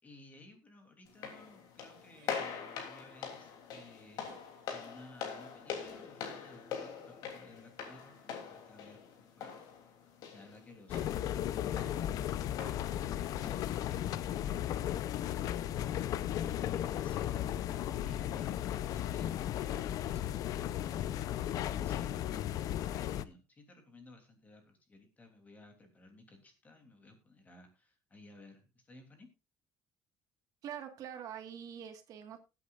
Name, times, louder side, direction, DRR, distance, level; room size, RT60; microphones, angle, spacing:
voice 1, 0.0-4.2 4.7-9.5 18.0-29.3, left 2 dB, 20° left, 5 dB, 3.0 m, -58 dB
sound 1, 1.1-14.1, left 7 dB, 75° left, 3.1 m, -44 dB
sound 2, 2.1-2.4 3.7-3.9 4.2-4.5 5.8-6.4, right 8 dB, 75° right, 3.0 m, -61 dB
sound 3, 10.9-23.2, left 11 dB, 60° left, 0.6 m, -35 dB
voice 2, 30.6-32.4, right 9 dB, 60° right, 7 dB, 1.6 m, -44 dB
20.0 x 8.7 x 2.5 m, 0.28 s
cardioid pair, 145°, 7 cm